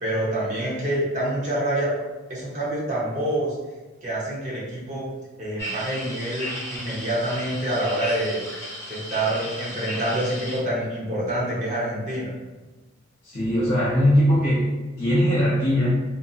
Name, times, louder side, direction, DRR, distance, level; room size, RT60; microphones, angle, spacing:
voice 1, 0.0-1.9 2.3-3.6 4.0-5.1 5.4-8.4 8.9-12.3, right 1 dB, 35° right, -6 dB, 0.8 m, -26 dB
sound 1, 5.6-10.6, equal, 15° left, 0.9 m, -35 dB
voice 2, 13.2-14.7 15.0-16.0, equal, 35° left, -9 dB, 0.5 m, -20 dB
2.6 x 2.5 x 2.3 m, 1.2 s
head